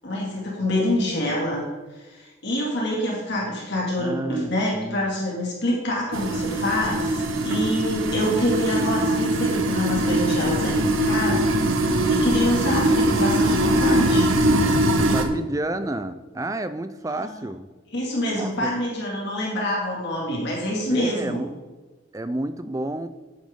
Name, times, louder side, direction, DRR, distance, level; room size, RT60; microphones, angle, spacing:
voice 1, 0.0-1.7 1.9-10.7 11.0-14.3 17.1-17.4 17.9-21.4, left 1 dB, 50° left, -3 dB, 2.4 m, -26 dB
voice 2, 4.0-5.1 14.9-17.7 18.4-18.7 20.9-21.5 22.1-23.1, right 1 dB, 15° right, 11 dB, 0.4 m, -30 dB
sound 1, 6.1-15.2, right 1 dB, 65° right, 1.1 m, -22 dB
10.5 x 8.9 x 3.7 m, 1.3 s
head